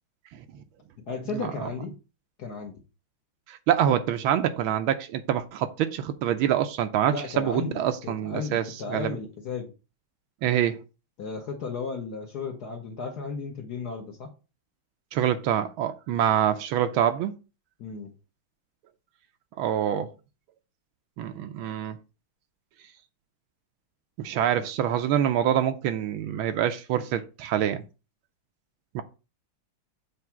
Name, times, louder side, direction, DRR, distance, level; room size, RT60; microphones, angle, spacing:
voice 1, 1.1-1.9 2.4-2.8 7.1-9.7 11.2-14.3 17.8-18.1 24.6-24.7, left 4 dB, 55° left, 1.4 m, -34 dB
voice 2, 3.5-9.2 10.4-10.8 15.1-17.3 19.6-20.1 21.2-22.0 24.2-27.8 28.9-29.0, right 10 dB, 80° right, 1.5 m, -25 dB
7.2 x 3.3 x 5.8 m
omnidirectional pair, 2.3 m